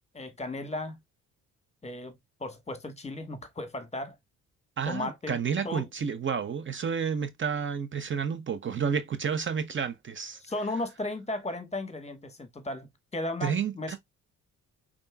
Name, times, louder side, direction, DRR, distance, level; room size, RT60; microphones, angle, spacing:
voice 1, 0.1-1.0 1.8-2.1 2.4-4.1 4.8-5.4 5.6-5.9 10.4-13.9, left 2 dB, 20° left, 1.2 m, -35 dB
voice 2, 4.8-10.4 13.4-14.0, right 6 dB, 40° right, 0.7 m, -30 dB
5.3 x 3.7 x 2.2 m
cardioid pair, 90°, 30 cm